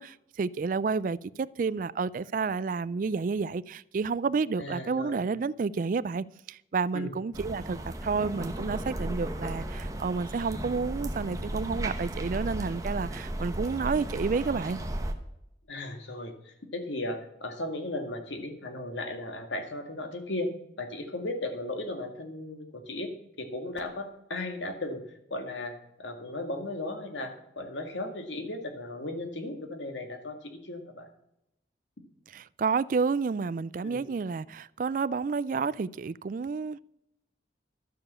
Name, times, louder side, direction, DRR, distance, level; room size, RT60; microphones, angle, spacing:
voice 1, 0.0-14.8 32.3-36.8, right 5 dB, 45° right, 0.3 m, -30 dB
voice 2, 4.6-5.3 6.9-7.1 15.7-20.5 20.8-23.1 23.4-25.0 25.3-25.7 26.0-31.1 33.8-34.1, left 2 dB, 85° left, 2.0 m, -36 dB
sound 1, 7.3-15.1, right 1 dB, 20° right, 1.0 m, -35 dB
12.0 x 6.8 x 6.8 m
head